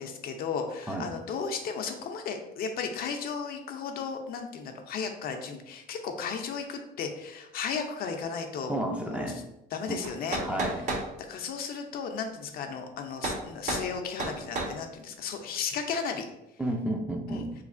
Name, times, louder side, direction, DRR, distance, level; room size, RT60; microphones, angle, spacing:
voice 1, 0.0-8.7 9.0-9.3 9.7-10.4 11.3-16.3 17.3-17.4, left 6 dB, 60° left, 4 dB, 0.5 m, -34 dB
voice 2, 8.7-9.4 9.9-10.0 10.4-10.8 16.6-17.5, right 1 dB, 5° right, 2 dB, 0.4 m, -31 dB
sound 1, 10.0-11.1 13.2-13.4 13.7-13.9 14.2-14.8, right 2 dB, 45° right, 0.6 m, -31 dB
3.4 x 3.1 x 2.5 m, 0.88 s
cardioid pair, 110°, 17 cm